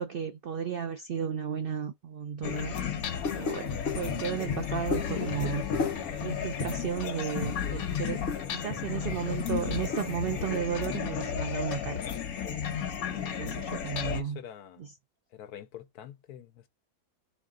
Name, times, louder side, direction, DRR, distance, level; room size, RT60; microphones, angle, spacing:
voice 1, 0.0-2.8 3.4-5.6 6.2-12.0 13.1-14.4 14.8-14.9, right 8 dB, 80° right, 0.5 m, -34 dB
sound 1, 2.4-14.2, left 8 dB, 75° left, 1.3 m, -34 dB
sound 2, 3.0-10.6, left 4 dB, 50° left, 1.1 m, -37 dB
voice 2, 14.0-14.9 15.3-16.7, left 10 dB, 90° left, 1.2 m, -46 dB
3.6 x 3.1 x 3.7 m
omnidirectional pair, 1.6 m